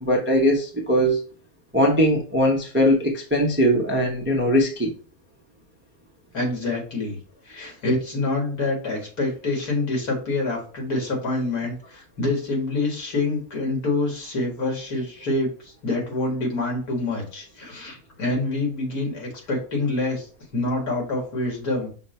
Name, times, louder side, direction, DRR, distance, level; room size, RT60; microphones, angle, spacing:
voice 1, 0.0-1.2 1.7-4.9, equal, 15° right, 0.4 m, -20 dB
voice 2, 6.3-7.2 7.5-15.5 15.8-20.2 20.5-21.9, left 2 dB, 85° left, 2.2 m, -26 dB
5.7 x 2.2 x 4.2 m
omnidirectional pair, 1.5 m